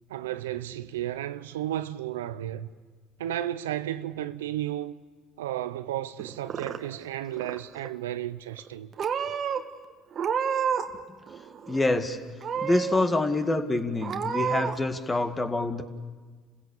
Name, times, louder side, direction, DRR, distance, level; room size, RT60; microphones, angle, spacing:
voice 1, 0.1-2.7 3.2-5.0 5.4-8.9, right 12 dB, 90° right, 0.6 m, -33 dB
Purr / Meow, 6.2-7.1 7.3-7.9 8.6-8.7 9.0-9.6 10.1-11.0 11.3-12.0 12.4-13.0 13.4-13.5 14.0-14.8, right 7 dB, 50° right, 1.4 m, -30 dB
voice 2, 11.7-12.2 12.6-15.8, left 2 dB, 20° left, 2.1 m, -26 dB
29.5 x 16.0 x 7.1 m
hypercardioid pair, 70°, 0 cm